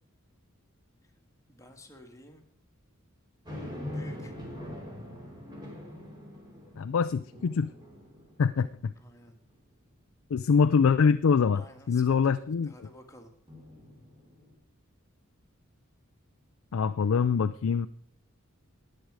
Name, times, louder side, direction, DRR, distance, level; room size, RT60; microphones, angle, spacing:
voice 1, 1.5-2.4 3.8-4.3 8.9-9.4 11.5-13.3 13.7-13.8, left 1 dB, 15° left, 4 dB, 1.7 m, -53 dB
sound 1, 3.4-9.0 9.5-9.6 13.5-14.6, left 1 dB, 20° right, 3.8 m, -43 dB
voice 2, 6.8-7.7 8.4-8.9 10.3-11.6 11.9-12.7 16.7-17.9, left 5 dB, 70° left, 11 dB, 0.4 m, -24 dB
20.5 x 7.8 x 4.8 m, 0.62 s
head